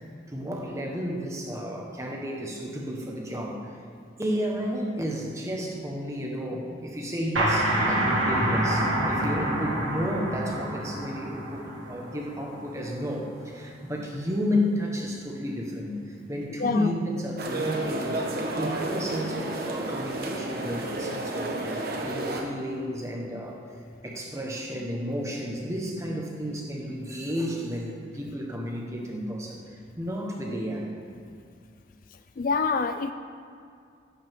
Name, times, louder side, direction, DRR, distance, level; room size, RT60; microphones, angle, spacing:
voice 1, 0.3-3.7 4.2-18.2 18.6-23.6 24.0-29.6 30.0-30.9, equal, 15° right, -1 dB, 1.3 m, -32 dB
sound 1, 7.4-12.8, right 1 dB, 75° right, 2.5 m, -27 dB
sound 2, 17.4-22.4, right 2 dB, 50° right, 1.2 m, -31 dB
voice 2, 32.4-33.1, left 4 dB, 45° left, 9 dB, 0.4 m, -26 dB
16.0 x 8.8 x 3.7 m, 2.4 s
head